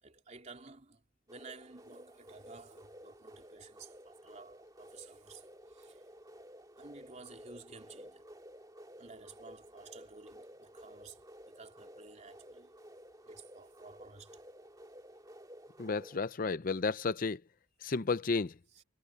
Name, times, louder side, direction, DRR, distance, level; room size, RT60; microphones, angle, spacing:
voice 1, 0.0-1.0 1.3-5.4 5.7-6.0 6.8-8.2 9.0-12.7 13.3-14.4 18.7-18.8, right 4 dB, 35° right, 3.3 m, -53 dB
sound 1, 1.3-16.2, equal, 20° right, 2.5 m, -54 dB
voice 2, 15.8-17.4 17.8-18.6, left 4 dB, 45° left, 0.5 m, -32 dB
head